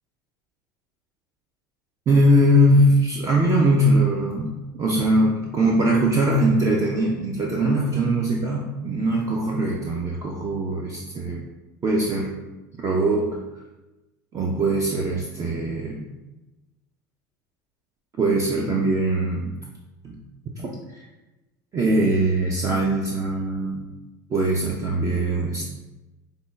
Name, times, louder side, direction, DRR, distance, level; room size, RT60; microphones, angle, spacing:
voice 1, 2.1-11.4 11.8-12.3 12.8-13.4 14.3-16.1 18.2-19.5 20.0-20.1 20.5-20.8 21.7-23.8 24.3-25.7, right 1 dB, 30° right, -1 dB, 0.4 m, -21 dB
5.0 x 2.2 x 2.3 m, 1.1 s
hypercardioid pair, 80°, 10 cm